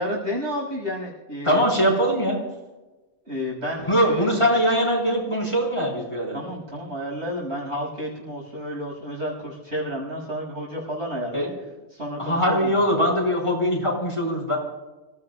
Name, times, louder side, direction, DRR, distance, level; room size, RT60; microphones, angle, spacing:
voice 1, 0.0-1.6 3.2-4.4 6.3-11.5 11.9-12.8, equal, 80° right, -3 dB, 6.6 m, -31 dB
voice 2, 1.4-2.4 3.9-6.4 11.3-11.5 12.2-14.6, equal, 25° left, -2 dB, 3.8 m, -22 dB
28.5 x 16.0 x 2.3 m, 1.1 s
omnidirectional pair, 1.1 m